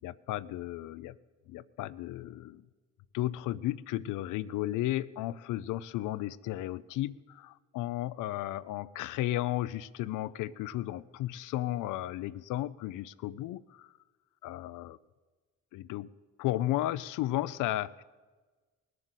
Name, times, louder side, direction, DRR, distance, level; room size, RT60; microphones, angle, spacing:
voice 1, 0.0-1.2 1.5-2.6 3.1-13.9 14.4-15.0 15.7-16.1 16.4-18.0, left 15 dB, 85° left, 16 dB, 0.5 m, -34 dB
18.0 x 7.7 x 8.2 m, 1.3 s
cardioid pair, 90°, 30 cm